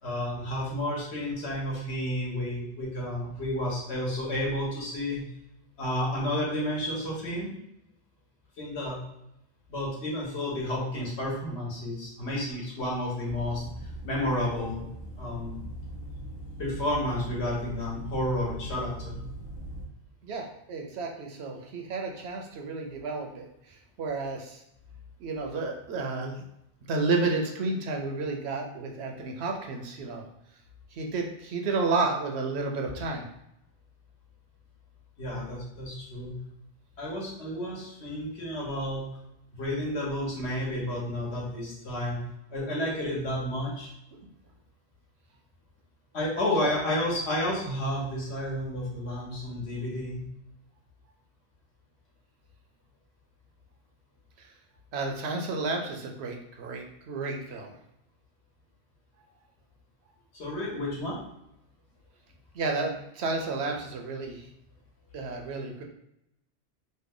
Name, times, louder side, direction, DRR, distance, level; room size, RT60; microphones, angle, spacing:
voice 1, 0.0-5.2 5.8-7.5 8.6-9.0 9.7-13.6 14.0-14.8 15.2-15.6 16.6-19.2 35.2-36.3 37.0-39.0 39.6-42.2 42.5-43.9 46.1-50.2 60.3-61.2, left 1 dB, 70° left, -4 dB, 1.3 m, -31 dB
sound 1, 13.2-19.8, right 1 dB, 55° left, 1.2 m, -40 dB
voice 2, 20.2-24.6 25.2-26.4 26.9-30.2 30.9-33.3 46.6-46.7 54.9-57.7 62.5-64.5 65.1-65.8, right 3 dB, 70° right, 2 dB, 0.8 m, -31 dB
3.2 x 2.1 x 3.6 m, 0.81 s
omnidirectional pair, 1.2 m